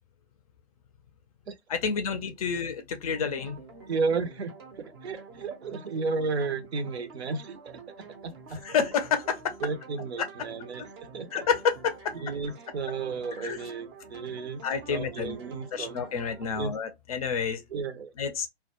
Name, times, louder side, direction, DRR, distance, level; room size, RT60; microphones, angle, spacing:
voice 1, 1.7-3.6 8.6-9.6 11.3-12.1 13.4-13.6 14.6-15.4 15.7-17.6 18.2-18.5, left 6 dB, 35° left, 0.4 m, -29 dB
sound 1, 3.1-16.5, right 4 dB, 25° right, 0.5 m, -48 dB
voice 2, 3.9-8.6 9.6-10.8 11.1-11.4 12.1-14.6 14.9-16.1 16.6-16.7 17.7-18.1, right 4 dB, 75° right, 0.6 m, -33 dB
2.2 x 2.1 x 2.8 m
hypercardioid pair, 130°, 32 cm